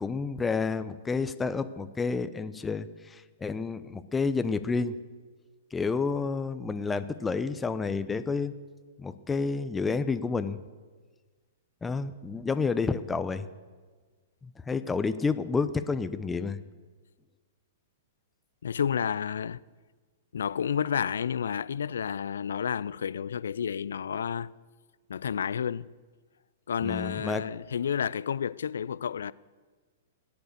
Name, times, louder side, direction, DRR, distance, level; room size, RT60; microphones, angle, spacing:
voice 1, 0.0-5.0 5.7-8.5 9.0-10.6 11.8-13.5 14.4-16.6 26.8-27.4, left 4 dB, 10° left, 0.7 m, -30 dB
voice 2, 18.6-19.6 20.3-24.5 25.1-25.9 26.7-29.3, left 7 dB, 70° left, 0.4 m, -30 dB
17.5 x 10.5 x 6.7 m
hypercardioid pair, 115°, 0 cm